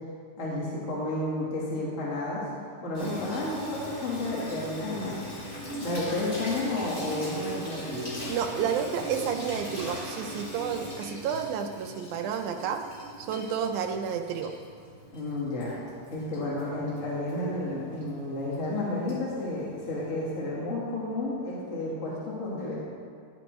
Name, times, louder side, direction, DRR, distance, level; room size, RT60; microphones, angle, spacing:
voice 1, 0.4-2.4 2.8-5.2 5.7-8.1 15.1-15.7 16.1-22.8, left 2 dB, 50° left, -6 dB, 0.9 m, -31 dB
Water tap faucet / Sink (filling or washing), 2.9-20.4, equal, 15° left, 1.5 m, -40 dB
voice 2, 8.3-12.8 13.2-14.5, right 7 dB, 80° right, 6 dB, 1.8 m, -31 dB
11.0 x 8.0 x 3.1 m, 2.2 s
omnidirectional pair, 3.8 m